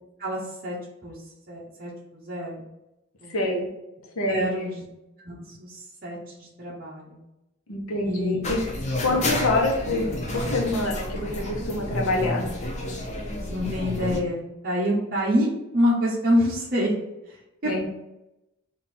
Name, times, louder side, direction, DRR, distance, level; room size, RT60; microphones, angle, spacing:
voice 1, 0.2-0.8 1.0-1.2 1.5-2.6 3.2-3.4 4.3-4.8 5.2-7.2 8.0-8.4 13.5-16.9 17.3-17.4 17.6-17.9, equal, 45° right, -6 dB, 0.8 m, -27 dB
voice 2, 3.3-3.7 4.2-4.5 7.7-8.6 9.0-12.5 17.6-17.9, left 2 dB, 90° left, 1 dB, 0.9 m, -26 dB
sound 1, 8.4-14.2, left 1 dB, 35° left, 0.6 m, -30 dB
3.7 x 2.6 x 4.2 m, 0.91 s
head